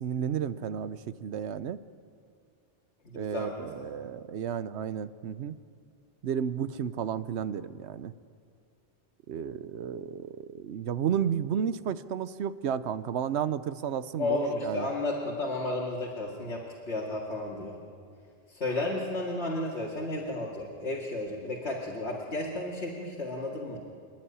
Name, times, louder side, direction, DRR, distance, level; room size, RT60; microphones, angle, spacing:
voice 1, 0.0-1.8 3.1-5.5 6.2-8.1 9.3-14.9, right 8 dB, 75° right, 14 dB, 1.0 m, -32 dB
voice 2, 3.1-3.6 14.2-17.7 18.5-23.8, left 2 dB, 70° left, -3 dB, 2.5 m, -33 dB
28.0 x 11.0 x 10.0 m, 2.2 s
omnidirectional pair, 1.2 m